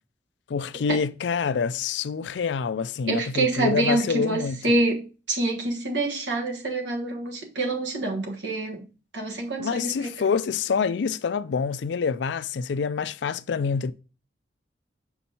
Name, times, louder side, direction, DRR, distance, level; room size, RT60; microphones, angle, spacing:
voice 1, 0.5-4.8 9.6-13.9, left 5 dB, 85° left, 0.4 m, -26 dB
voice 2, 3.1-8.8 9.1-10.1, right 2 dB, 85° right, 1.4 m, -26 dB
6.9 x 5.2 x 2.8 m
head